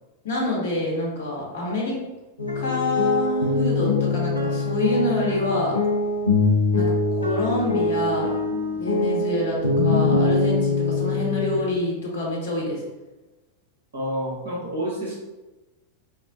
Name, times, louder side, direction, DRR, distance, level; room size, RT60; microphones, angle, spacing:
voice 1, 0.2-2.0 2.5-5.8 6.7-8.4 8.7-12.8, left 1 dB, 55° left, -3 dB, 0.8 m, -26 dB
sound 1, 2.4-11.7, left 3 dB, 85° left, 0.5 m, -23 dB
voice 2, 13.9-15.2, equal, 70° right, -4 dB, 1.1 m, -29 dB
4.1 x 2.0 x 2.6 m, 1.1 s
figure-of-eight pair, 90°, 0 cm